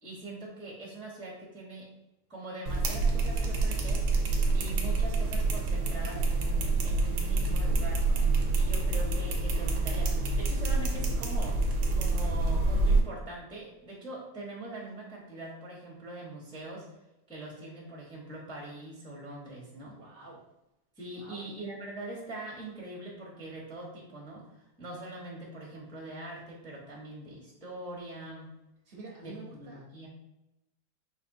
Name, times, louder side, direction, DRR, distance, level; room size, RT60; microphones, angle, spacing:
voice 1, 0.0-1.9 2.3-4.0 4.5-8.3 8.5-11.6 11.9-16.9 17.3-20.0 21.0-28.5 29.2-30.1, right 2 dB, 5° left, -4 dB, 0.8 m, -43 dB
sound 1, 2.7-13.0, right 3 dB, 75° right, 1.3 m, -27 dB
voice 2, 8.3-9.0 20.0-20.4 21.2-21.4 28.9-29.8, right 3 dB, 40° right, -2 dB, 0.9 m, -49 dB
5.1 x 3.3 x 2.7 m, 0.90 s
omnidirectional pair, 1.8 m